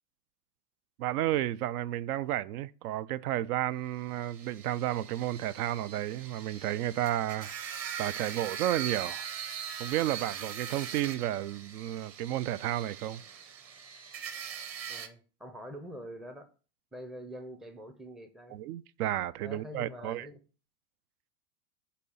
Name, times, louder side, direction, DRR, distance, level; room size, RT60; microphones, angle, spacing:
voice 1, 1.0-7.5 8.0-9.2 9.8-13.2 18.5-20.3, right 13 dB, 70° right, 0.5 m, -32 dB
sound 1, 4.1-15.1, right 8 dB, 30° right, 0.9 m, -41 dB
voice 2, 14.9-16.5 16.9-18.6 19.4-20.4, equal, ahead, 0.4 m, -45 dB
8.3 x 2.8 x 5.5 m
supercardioid pair, 125°, 48 cm